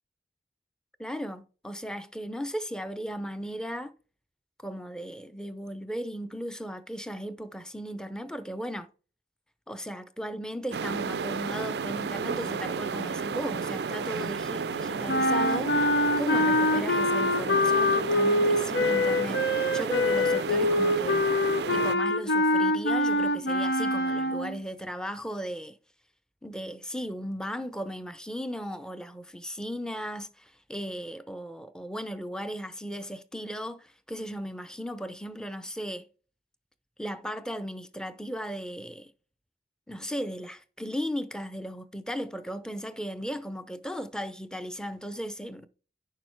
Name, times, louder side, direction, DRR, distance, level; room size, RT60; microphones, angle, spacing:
voice 1, 1.0-3.9 4.6-8.9 9.7-15.9 16.2-21.3 21.7-25.8 26.4-36.1 37.0-39.1 39.9-45.7, equal, 5° left, 0.6 m, -36 dB
sound 1, 10.7-21.9, right 5 dB, 65° right, 0.4 m, -32 dB
sound 2, 15.1-24.6, left 1 dB, 70° left, 0.8 m, -25 dB
9.7 x 6.7 x 4.6 m
head